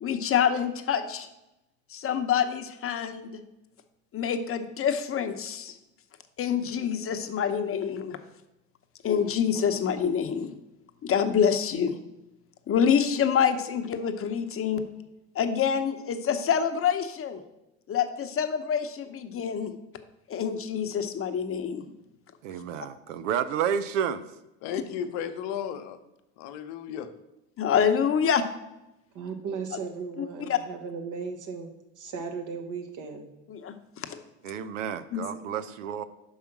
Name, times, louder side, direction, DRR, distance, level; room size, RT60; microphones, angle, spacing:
voice 1, 0.0-1.3 1.9-3.3 4.1-5.8 6.4-8.2 9.0-10.5 11.0-12.0 12.7-14.8 15.3-17.4 17.9-19.7 20.3-21.8 27.6-28.4 29.7-29.8 30.2-30.6 33.5-34.2 35.1-35.3, left 7 dB, 40° left, 8 dB, 0.8 m, -26 dB
voice 2, 22.4-24.3 34.4-36.1, right 8 dB, 90° right, 13 dB, 0.5 m, -30 dB
voice 3, 24.6-26.0 26.4-27.1, left 8 dB, 75° left, 8 dB, 0.8 m, -34 dB
voice 4, 29.1-31.7 32.0-33.3, right 5 dB, 55° right, 4 dB, 1.4 m, -36 dB
5.6 x 4.8 x 5.9 m, 0.92 s
hypercardioid pair, 75°, 36 cm